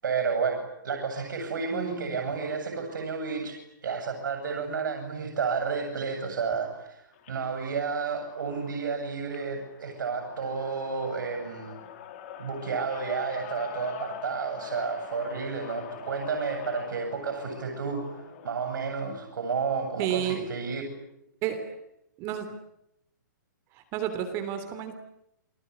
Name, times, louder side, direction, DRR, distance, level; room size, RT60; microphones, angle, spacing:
voice 1, 0.0-11.8 12.4-18.1 18.4-20.8, right 5 dB, 75° right, 3 dB, 7.9 m, -31 dB
voice 2, 1.7-2.2 20.0-20.4 21.4-21.8 22.2-22.5 23.7-24.9, right 10 dB, 25° right, 7 dB, 3.3 m, -31 dB
sound 1, 7.1-18.5, left 9 dB, 40° left, 4.0 m, -44 dB
29.5 x 19.5 x 9.9 m, 0.79 s
hypercardioid pair, 160°, 10 cm